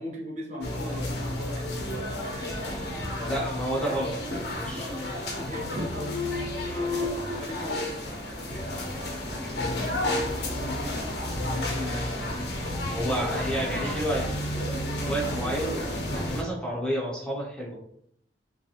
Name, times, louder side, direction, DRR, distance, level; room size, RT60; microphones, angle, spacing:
voice 1, 0.0-2.6 3.2-4.0 4.9-12.4, left 1 dB, 40° right, -2 dB, 0.8 m, -41 dB
sound 1, 0.6-16.4, left 1 dB, 65° left, 0.6 m, -32 dB
voice 2, 3.3-4.1 4.5-4.9 12.9-14.7 15.0-17.7, right 1 dB, 5° left, -5 dB, 0.5 m, -31 dB
sound 2, 4.7-5.4 5.7-7.3, left 3 dB, 80° right, 0.5 m, -34 dB
3.1 x 2.3 x 2.8 m, 0.71 s
head